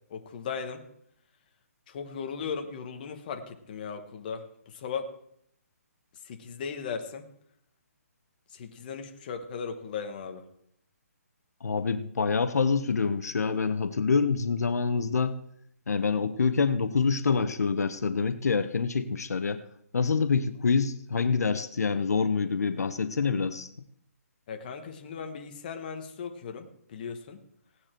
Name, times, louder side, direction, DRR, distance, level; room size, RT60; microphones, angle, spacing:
voice 1, 0.1-0.9 1.9-5.1 6.2-7.3 8.5-10.4 24.5-27.4, left 6 dB, 35° left, 6 dB, 1.2 m, -37 dB
voice 2, 11.6-15.4 15.9-19.6 19.9-23.7, left 5 dB, 85° left, 11 dB, 0.9 m, -26 dB
17.0 x 9.6 x 4.5 m, 0.72 s
hypercardioid pair, 165°, 8 cm